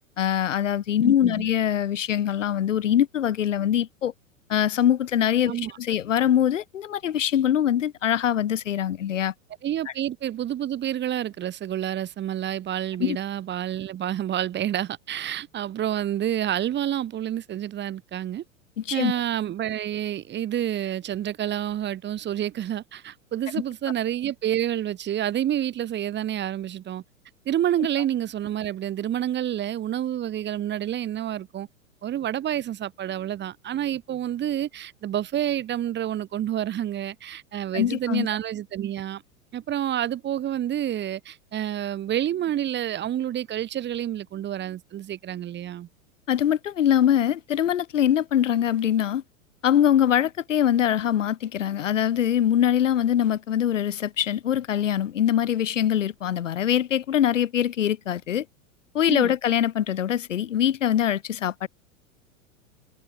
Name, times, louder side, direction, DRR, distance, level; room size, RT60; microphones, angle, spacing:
voice 1, 0.2-4.1 4.5-9.3 13.0-13.2 18.8-19.1 37.7-38.3 46.3-49.2 49.6-58.4 58.9-61.7, left 10 dB, 65° left, 2.6 m, -23 dB
voice 2, 1.0-1.3 5.5-5.8 9.6-18.4 18.9-27.0 27.5-31.7 32.0-39.2 39.5-45.9 59.1-59.3, right 11 dB, 25° right, 4.7 m, -28 dB
figure-of-eight pair, 95°, 41 cm